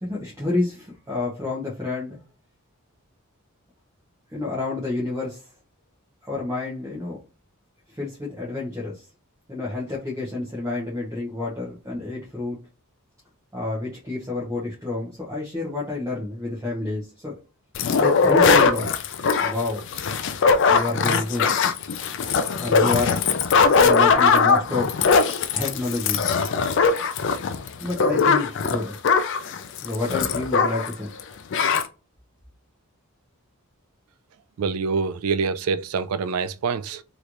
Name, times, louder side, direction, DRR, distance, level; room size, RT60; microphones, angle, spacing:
voice 1, 0.0-2.2 4.3-5.5 6.2-7.2 7.9-9.1 9.5-12.6 13.5-17.4 17.9-18.9 19.4-19.9 20.7-21.5 22.6-23.3 23.8-25.0 25.5-26.2 27.8-28.9 29.8-31.1, left 2 dB, 15° right, 1.0 m, -29 dB
sound 1, 17.7-30.9 31.2-31.3 31.5-31.9, left 5 dB, 55° left, 0.4 m, -20 dB
voice 2, 34.6-37.0, right 5 dB, 75° right, 0.3 m, -25 dB
3.2 x 3.0 x 2.5 m
head